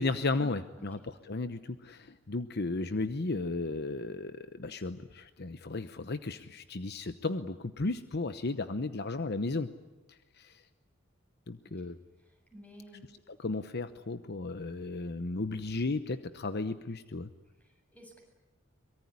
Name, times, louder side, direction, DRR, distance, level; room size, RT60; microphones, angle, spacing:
voice 1, 0.0-9.7 10.4-10.6 11.5-12.0 13.3-17.3, left 3 dB, 55° left, 11 dB, 0.9 m, -34 dB
voice 2, 12.2-13.0 17.6-18.2, equal, 10° left, 3 dB, 7.8 m, -52 dB
24.0 x 22.5 x 9.8 m, 1.1 s
head